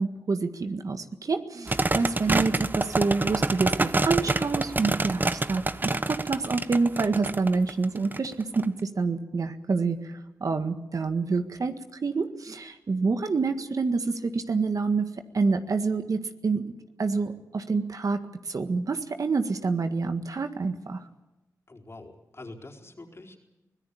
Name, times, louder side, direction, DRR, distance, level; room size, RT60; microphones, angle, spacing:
voice 1, 0.0-10.1 10.4-11.7 12.0-15.1 15.3-16.7 17.0-18.2 18.5-21.0, right 4 dB, 65° right, 8 dB, 1.7 m, -27 dB
sound 1, 1.7-8.6, right 2 dB, 30° right, 0.9 m, -27 dB
voice 2, 1.9-2.2 21.7-23.4, left 2 dB, 45° left, 2 dB, 4.3 m, -45 dB
24.5 x 17.0 x 8.6 m, 1.0 s
cardioid pair, 50°, 6 cm